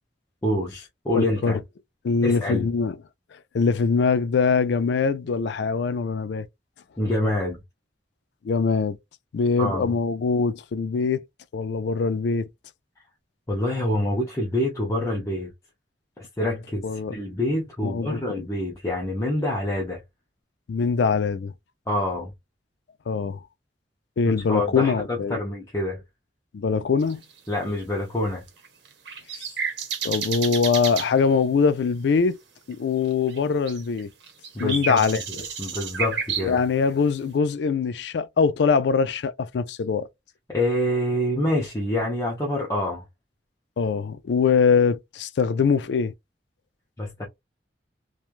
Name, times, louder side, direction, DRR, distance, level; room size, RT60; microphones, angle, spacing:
voice 1, 0.4-1.6 2.2-2.7 7.0-7.6 9.6-10.0 13.5-15.5 16.4-20.0 21.9-22.3 24.5-26.0 27.5-28.4 34.5-35.0 35.6-36.6 40.5-43.0 47.0-47.3, left 1 dB, 15° left, 0.6 m, -26 dB
voice 2, 1.1-1.6 2.0-3.0 3.5-6.5 8.4-9.0 9.3-11.2 11.5-12.5 16.8-17.1 17.8-18.2 20.7-21.5 23.1-23.4 24.2-25.4 26.5-27.2 30.0-32.4 32.7-34.1 34.6-35.2 36.4-40.1 43.8-46.1, left 5 dB, 70° left, 0.4 m, -23 dB
sound 1, 27.0-27.3 28.5-31.1 32.7-32.8 33.1-33.4 33.7-36.5, right 6 dB, 75° right, 0.9 m, -31 dB
3.1 x 2.3 x 2.4 m
head